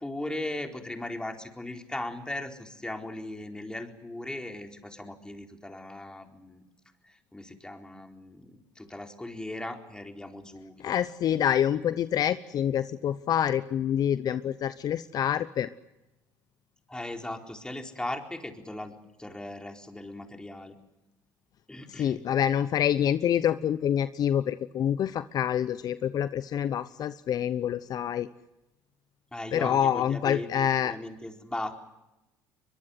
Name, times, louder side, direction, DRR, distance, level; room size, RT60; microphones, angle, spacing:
voice 1, 0.0-6.6 7.0-10.8 16.9-20.8 21.7-22.2 29.3-31.7, left 1 dB, 10° left, 3 dB, 4.3 m, -38 dB
voice 2, 10.8-15.7 21.9-28.3 29.5-31.0, left 9 dB, 55° left, 14 dB, 0.8 m, -27 dB
23.0 x 22.5 x 8.1 m, 0.96 s
supercardioid pair, 70°, 8 cm